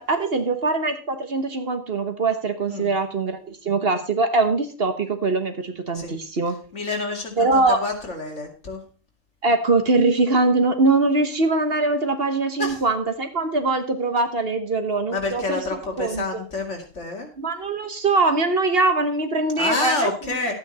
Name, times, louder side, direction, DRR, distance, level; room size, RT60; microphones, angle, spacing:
voice 1, 0.0-6.6 7.4-7.8 9.4-15.6 16.0-16.2 17.4-20.1, right 3 dB, 50° right, 7 dB, 1.4 m, -22 dB
voice 2, 6.7-8.8 12.6-12.8 15.1-17.3 19.6-20.5, left 3 dB, 60° left, 1 dB, 2.8 m, -28 dB
12.5 x 9.0 x 4.2 m, 0.36 s
omnidirectional pair, 1.3 m